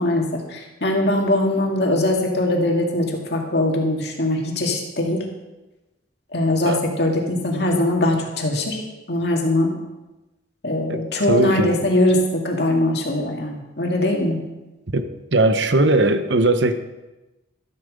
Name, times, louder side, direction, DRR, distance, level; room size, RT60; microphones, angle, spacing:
voice 1, 0.0-5.2 6.3-8.8 9.1-9.7 10.6-14.4, left 1 dB, 60° left, 0 dB, 2.4 m, -21 dB
voice 2, 11.3-11.7 14.9-16.7, right 2 dB, 70° right, 9 dB, 1.0 m, -19 dB
13.0 x 8.8 x 6.7 m, 1.1 s
head